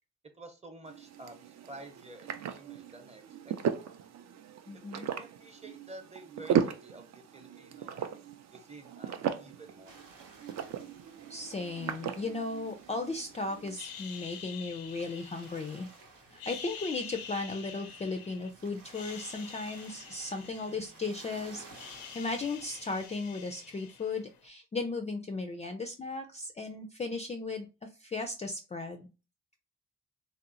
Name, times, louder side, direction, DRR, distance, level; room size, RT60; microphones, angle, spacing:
voice 1, 0.4-3.8 4.9-8.2 8.5-10.0, right 2 dB, 20° right, 6 dB, 0.7 m, -50 dB
sound 1, 0.9-13.8, right 8 dB, 50° right, 0.4 m, -37 dB
voice 2, 4.7-5.1 11.3-15.9 16.3-21.6 22.1-29.1, left 3 dB, 20° left, 5 dB, 0.4 m, -36 dB
sound 2, 9.9-23.1, right 3 dB, 75° right, 0.8 m, -55 dB
sound 3, 13.8-15.9 16.3-18.5 18.8-21.2 21.5-24.4, left 7 dB, 80° left, 0.5 m, -47 dB
2.8 x 2.0 x 2.5 m, 0.31 s
hypercardioid pair, 40°, 34 cm